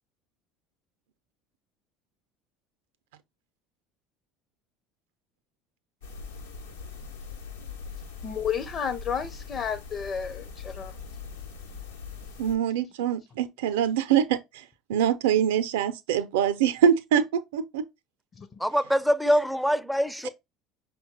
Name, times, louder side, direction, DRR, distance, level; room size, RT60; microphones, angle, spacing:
sound 1, 6.0-12.5, left 5 dB, 80° left, 0.9 m, -41 dB
voice 1, 8.2-10.9 18.4-18.5, left 7 dB, 40° left, 0.7 m, -31 dB
voice 2, 12.4-17.9 20.2-20.3, right 9 dB, 70° right, 0.5 m, -24 dB
voice 3, 18.6-20.3, equal, ahead, 0.4 m, -24 dB
5.7 x 2.2 x 3.9 m
figure-of-eight pair, 65°, 0 cm